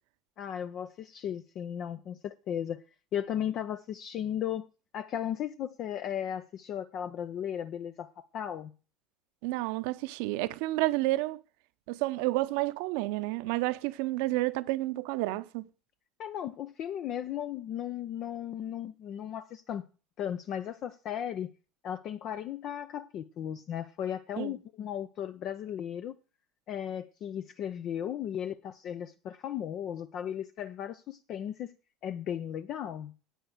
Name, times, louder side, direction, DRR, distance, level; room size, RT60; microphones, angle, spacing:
voice 1, 0.4-2.8 3.1-4.7 4.9-8.7 16.2-19.8 20.2-21.5 21.8-26.1 26.7-31.7 32.0-33.1, left 9 dB, 45° left, 0.7 m, -36 dB
voice 2, 9.4-11.4 11.9-15.7 24.4-24.5, right 19 dB, 60° right, 0.8 m, -30 dB
10.0 x 8.9 x 6.6 m
figure-of-eight pair, 70°, 0 cm